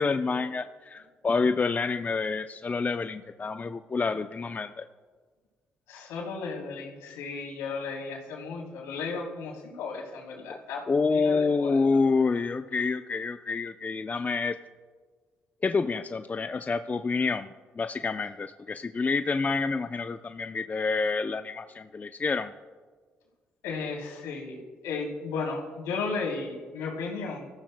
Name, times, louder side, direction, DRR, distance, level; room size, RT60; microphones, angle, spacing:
voice 1, 0.0-4.9 10.9-14.6 15.6-17.5 17.8-22.5, left 4 dB, 30° left, 9 dB, 0.5 m, -28 dB
voice 2, 5.9-10.8 11.1-11.8 23.6-27.5, left 4 dB, 80° left, -2 dB, 3.1 m, -34 dB
24.5 x 14.0 x 2.2 m, 1.5 s
hypercardioid pair, 50°, 5 cm